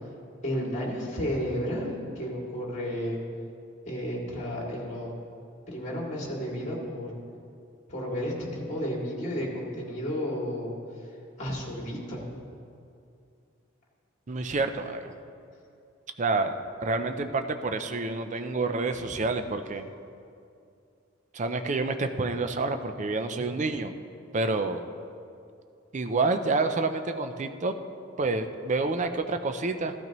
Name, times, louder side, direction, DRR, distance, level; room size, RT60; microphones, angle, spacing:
voice 1, 0.4-3.2 3.8-5.1 5.7-7.1 7.9-11.1 11.4-12.3 18.9-19.3, equal, 35° left, -3 dB, 2.5 m, -32 dB
voice 2, 14.3-15.1 16.2-19.9 21.3-23.9 24.3-24.8 25.9-27.7 28.2-29.9, right 3 dB, 40° right, 8 dB, 0.5 m, -28 dB
15.0 x 12.0 x 3.1 m, 2.5 s
head